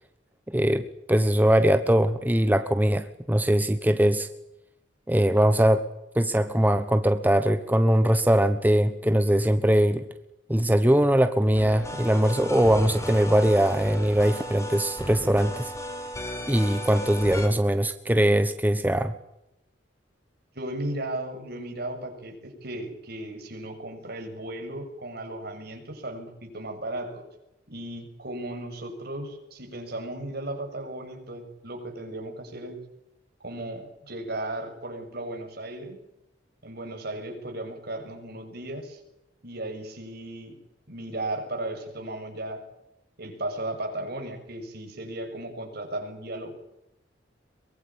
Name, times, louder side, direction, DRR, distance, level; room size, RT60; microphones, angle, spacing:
voice 1, 0.5-4.3 5.1-5.9 6.1-10.1 10.5-15.7 16.5-19.1, right 1 dB, 10° right, 9 dB, 1.1 m, -21 dB
sound 1, 11.5-17.5, equal, 15° left, 6.2 m, -35 dB
voice 2, 20.6-27.3 27.7-32.8 33.4-36.0 36.6-39.0 39.4-40.6 40.9-42.6 43.2-46.5, right 1 dB, 60° right, 4 dB, 7.0 m, -35 dB
23.5 x 22.0 x 8.7 m, 0.85 s
head